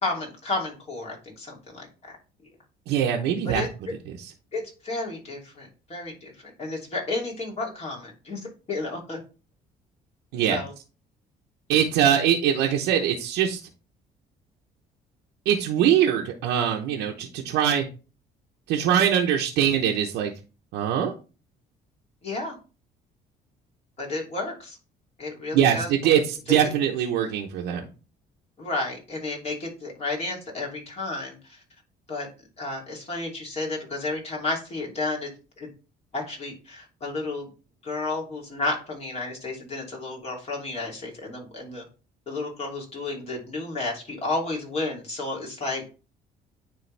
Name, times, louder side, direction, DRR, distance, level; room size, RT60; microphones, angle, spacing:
voice 1, 0.0-2.2 3.4-3.7 4.5-8.4 8.7-9.2 10.5-10.7 22.2-22.6 24.0-24.8 25.2-26.2 26.5-26.7 28.6-31.6 32.1-32.3 32.6-35.3 35.6-35.7 36.1-37.5 37.8-41.8 42.3-46.0, left 2 dB, 40° left, -1 dB, 2.8 m, -32 dB
voice 2, 2.9-3.6 10.3-10.6 11.7-13.6 15.5-17.8 18.7-20.3 20.7-21.1 25.5-27.9, right 9 dB, 90° right, 0 dB, 0.9 m, -22 dB
9.6 x 3.5 x 3.3 m, 0.34 s
cardioid pair, 110°, 17 cm